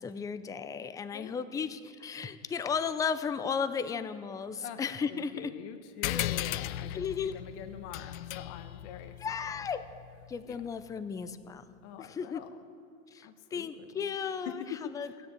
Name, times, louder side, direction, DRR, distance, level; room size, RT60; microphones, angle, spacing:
voice 1, 0.0-5.5 6.9-7.3 9.2-9.8 10.3-11.6 12.0-12.4 13.1-14.6 14.9-15.3, left 6 dB, 10° left, 12 dB, 0.4 m, -34 dB
voice 2, 1.1-1.6 4.6-4.8 5.1-9.6 10.4-10.6 11.8-12.5 13.2-14.1 14.4-15.2, left 8 dB, 55° left, 8 dB, 1.2 m, -44 dB
sound 1, 6.0-10.9, left 14 dB, 70° left, 0.6 m, -37 dB
16.0 x 9.7 x 7.3 m, 2.5 s
hypercardioid pair, 110°, 41 cm